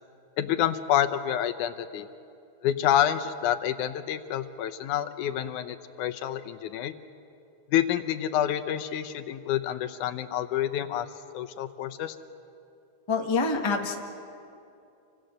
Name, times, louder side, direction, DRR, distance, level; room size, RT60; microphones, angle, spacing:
voice 1, 0.4-2.1 2.6-6.9 7.7-11.1 11.3-12.2, left 11 dB, 90° left, 9 dB, 2.4 m, -28 dB
voice 2, 13.1-14.0, left 4 dB, 15° left, 2 dB, 0.9 m, -26 dB
29.0 x 25.0 x 6.6 m, 2.6 s
omnidirectional pair, 3.4 m